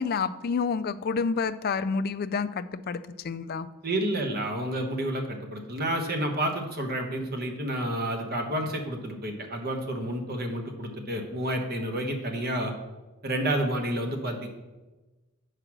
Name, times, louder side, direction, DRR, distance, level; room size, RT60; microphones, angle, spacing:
voice 1, 0.0-3.7, left 5 dB, 45° left, 13 dB, 0.3 m, -29 dB
voice 2, 3.8-12.7 13.2-14.5, right 1 dB, 45° right, 3 dB, 1.1 m, -30 dB
7.9 x 4.9 x 6.1 m, 1.1 s
head